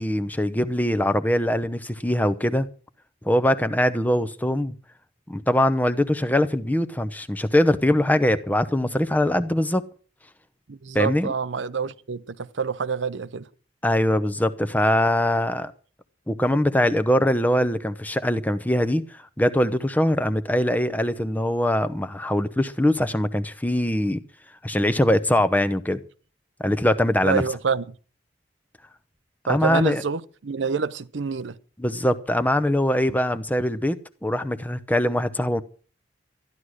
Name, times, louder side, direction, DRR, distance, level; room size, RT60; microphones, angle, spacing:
voice 1, 0.0-2.7 3.2-4.7 5.3-9.9 10.9-11.3 13.8-15.7 16.3-19.0 19.4-24.2 24.6-26.0 26.6-27.4 29.5-30.0 31.8-35.6, left 1 dB, 10° left, 0.8 m, -22 dB
voice 2, 10.7-13.5 27.2-27.9 29.5-31.6, right 5 dB, 80° right, 0.7 m, -27 dB
13.5 x 11.5 x 6.3 m
head